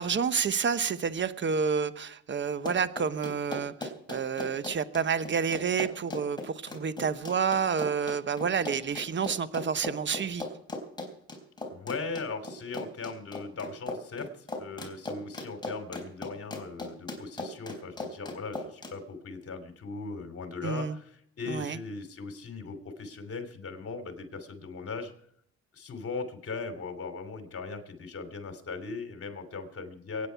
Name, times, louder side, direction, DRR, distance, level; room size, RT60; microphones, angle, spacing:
voice 1, 0.0-10.4 20.6-21.0 21.5-21.8, right 6 dB, 40° right, 13 dB, 1.0 m, -29 dB
Run, 2.5-18.9, left 2 dB, 15° left, 3.9 m, -38 dB
voice 2, 11.7-25.1 25.7-30.3, left 4 dB, 50° left, 7 dB, 3.0 m, -39 dB
24.0 x 9.7 x 4.6 m, 0.69 s
cardioid pair, 90°, 30 cm